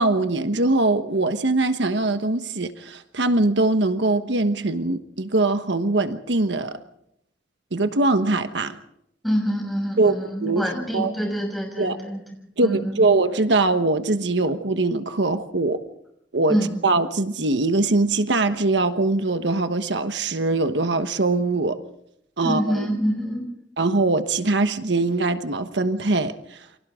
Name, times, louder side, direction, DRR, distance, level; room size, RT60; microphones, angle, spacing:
voice 1, 0.0-6.8 7.7-8.8 10.0-10.7 10.9-11.1 11.8-12.0 12.6-15.8 16.3-21.8 22.4-22.9 23.8-26.7, right 2 dB, 80° right, 9 dB, 1.3 m, -22 dB
voice 2, 9.2-12.2 12.6-13.0 16.5-16.7 22.4-23.5, equal, ahead, 0 dB, 6.3 m, -26 dB
29.0 x 25.0 x 3.7 m, 0.75 s
head